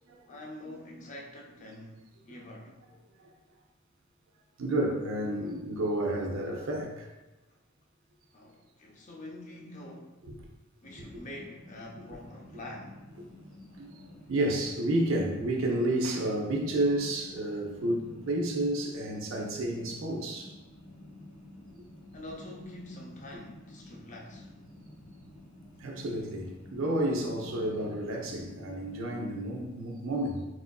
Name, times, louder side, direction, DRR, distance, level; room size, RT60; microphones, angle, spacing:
voice 1, 0.3-2.8 8.3-10.2 10.8-13.1 22.1-24.5, left 1 dB, 35° left, 0.5 m, -46 dB
voice 2, 4.6-7.1 10.3-10.4 13.8-20.5 25.8-30.5, right 1 dB, 65° right, 0.5 m, -30 dB
sound 1, 10.8-29.3, left 1 dB, 70° left, 0.7 m, -50 dB
4.3 x 2.4 x 2.2 m
head